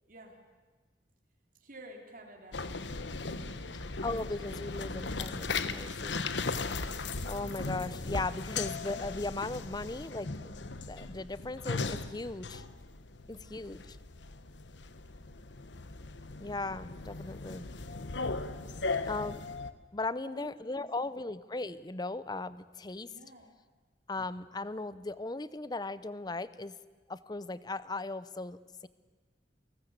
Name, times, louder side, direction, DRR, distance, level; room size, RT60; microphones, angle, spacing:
voice 1, 0.1-0.4 1.5-2.7 3.1-3.2 13.2-13.6 18.9-19.0 20.2-21.1 23.1-23.5, right 1 dB, 50° right, 3 dB, 3.6 m, -52 dB
sound 1, 2.5-19.7, left 3 dB, 75° left, 1.2 m, -38 dB
voice 2, 4.0-6.3 7.3-10.6 10.9-12.6 13.3-14.0 16.4-17.7 19.1-19.4 19.9-23.1 24.1-26.8 27.1-28.9, left 2 dB, 20° left, 16 dB, 0.7 m, -37 dB
27.5 x 19.5 x 8.1 m, 1.4 s
head